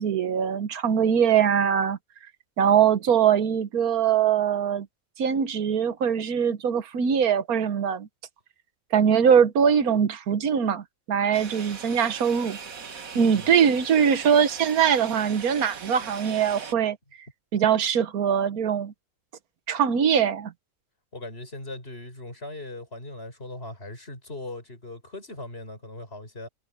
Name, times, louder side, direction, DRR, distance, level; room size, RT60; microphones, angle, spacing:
voice 1, 0.0-2.0 2.6-4.9 5.2-8.1 8.9-12.6 13.1-17.0 17.5-18.9 19.7-20.5, right 8 dB, 90° right, 1.6 m, -22 dB
sound 1, 11.3-16.7, right 6 dB, 70° right, 1.9 m, -40 dB
voice 2, 13.1-13.5 21.1-26.5, left 2 dB, 45° left, 6.8 m, -39 dB
omnidirectional pair, 1.5 m